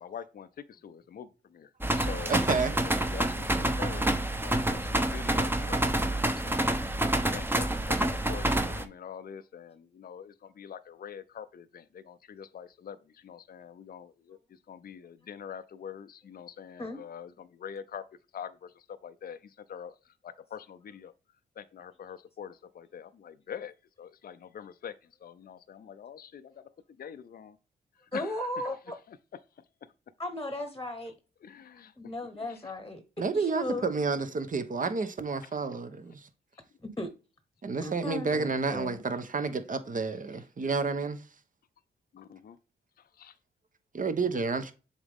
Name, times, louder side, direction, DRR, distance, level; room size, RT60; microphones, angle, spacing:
voice 1, 0.0-1.7 2.0-4.1 4.4-6.7 7.3-14.4 14.7-18.0 18.3-19.9 20.2-21.1 21.6-24.9 25.2-26.5 27.0-27.6 28.1-28.5 31.4-31.9 32.5-32.7 42.1-42.6 43.2-43.3, left 8 dB, 45° left, 0.5 m, -44 dB
sound 1, 1.8-8.8, right 1 dB, 10° right, 0.8 m, -28 dB
voice 2, 2.3-2.8 33.2-36.3 37.6-41.2 43.9-44.7, right 4 dB, 40° right, 1.0 m, -30 dB
voice 3, 28.1-29.0 30.2-31.1 32.0-33.0 33.3-33.9 36.8-37.1 37.8-39.0, left 1 dB, 15° left, 1.1 m, -36 dB
7.1 x 4.0 x 3.6 m
supercardioid pair, 50°, 20 cm